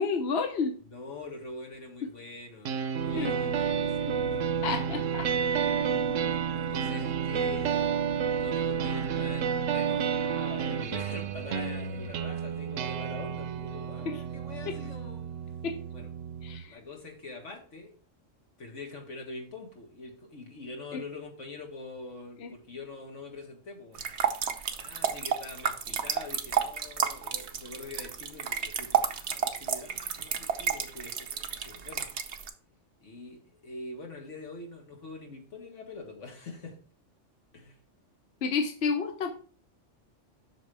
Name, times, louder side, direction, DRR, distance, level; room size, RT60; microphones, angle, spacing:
voice 1, 0.0-0.7 3.1-3.3 4.6-5.3 5.6-5.8 14.1-14.2 14.7-14.8 15.6-15.8 16.4-16.8 20.9-21.0 22.4-22.5 38.4-39.3, left 5 dB, 60° left, 1.0 m, -30 dB
voice 2, 0.8-4.1 4.6-4.8 6.5-7.9 8.4-15.3 15.9-16.1 16.6-17.9 18.6-24.0 24.8-32.1 33.0-36.8 37.5-37.8, left 3 dB, 75° left, 2.0 m, -44 dB
sound 1, 2.6-16.6, right 7 dB, 90° right, 1.0 m, -30 dB
sound 2, 3.0-16.1, equal, ahead, 4.2 m, -49 dB
sound 3, 24.0-32.5, right 7 dB, 65° right, 1.0 m, -31 dB
7.8 x 6.1 x 3.4 m
omnidirectional pair, 1.3 m